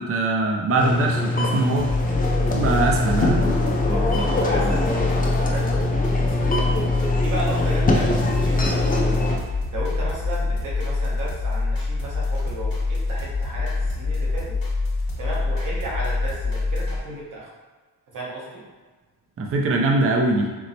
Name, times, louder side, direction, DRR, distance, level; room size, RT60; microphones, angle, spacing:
voice 1, 0.0-1.9 2.5-3.4 19.4-20.5, right 2 dB, 40° right, 0 dB, 0.4 m, -22 dB
sound 1, 0.8-9.4, left 2 dB, 25° left, 0.4 m, -23 dB
sound 2, 1.8-17.0, left 3 dB, 65° left, 1.0 m, -25 dB
voice 2, 3.9-6.7 6.9-9.3 9.7-14.5 15.2-17.5 18.1-18.6, right 2 dB, 55° right, -5 dB, 1.0 m, -34 dB
4.4 x 2.0 x 2.7 m, 1.4 s
wide cardioid pair, 125°, 36 cm